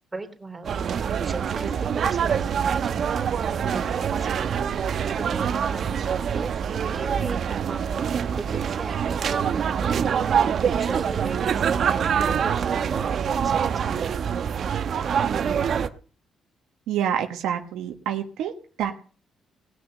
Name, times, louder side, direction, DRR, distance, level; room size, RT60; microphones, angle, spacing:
voice 1, 0.1-3.1 3.5-4.7 5.1-7.4 7.7-8.0 8.3-10.1 10.7-14.0, right 3 dB, 20° right, 3 dB, 3.4 m, -38 dB
sound 1, 0.6-15.9, right 7 dB, 60° right, 1.0 m, -25 dB
voice 2, 16.9-18.5 18.8-18.9, right 9 dB, 90° right, 4 dB, 1.5 m, -27 dB
19.0 x 6.3 x 7.8 m, 0.41 s
cardioid pair, 90°, 0 cm